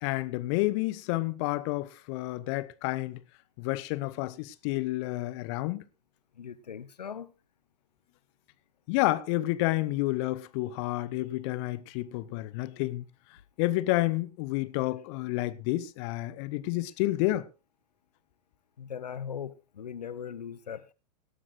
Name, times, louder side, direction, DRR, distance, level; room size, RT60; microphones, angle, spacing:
voice 1, 0.0-3.2 3.6-5.8 8.9-13.0 13.6-17.5, left 18 dB, 45° left, 0.8 m, -30 dB
voice 2, 6.4-7.3 18.8-20.9, left 8 dB, 75° left, 0.8 m, -39 dB
18.5 x 12.5 x 2.5 m
figure-of-eight pair, 95°, 21 cm